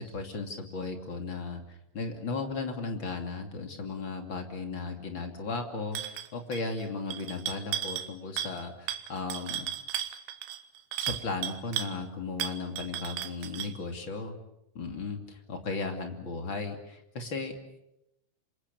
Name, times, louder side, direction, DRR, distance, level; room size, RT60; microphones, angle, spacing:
voice 1, 0.0-1.6 1.9-9.7 11.0-14.4 14.7-17.6, left 3 dB, 30° left, 4 dB, 2.6 m, -36 dB
sound 1, 6.0-6.3 6.5-6.8 7.1-8.1 8.4-8.6 8.9-11.9 12.4-13.8, right 11 dB, 85° right, 3.6 m, -35 dB
27.5 x 25.5 x 7.0 m, 0.85 s
omnidirectional pair, 5.3 m